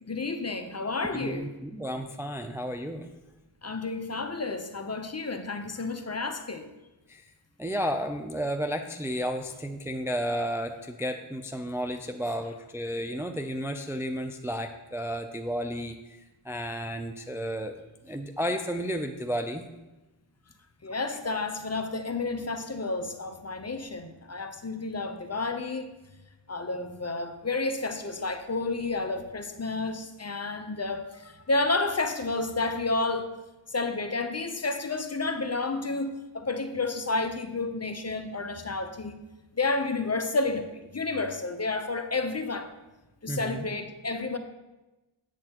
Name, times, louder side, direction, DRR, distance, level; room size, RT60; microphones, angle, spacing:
voice 1, 0.0-1.5 3.6-6.7 20.8-25.9 26.5-33.3 33.7-39.2 39.6-42.7 43.2-44.4, left 3 dB, 30° left, 7 dB, 0.7 m, -31 dB
voice 2, 1.1-3.1 7.1-7.2 7.6-16.0 16.4-17.7 18.0-19.6 43.3-43.7, equal, 5° right, 5 dB, 0.4 m, -32 dB
8.3 x 7.6 x 2.9 m, 1.1 s
wide cardioid pair, 50°, 49 cm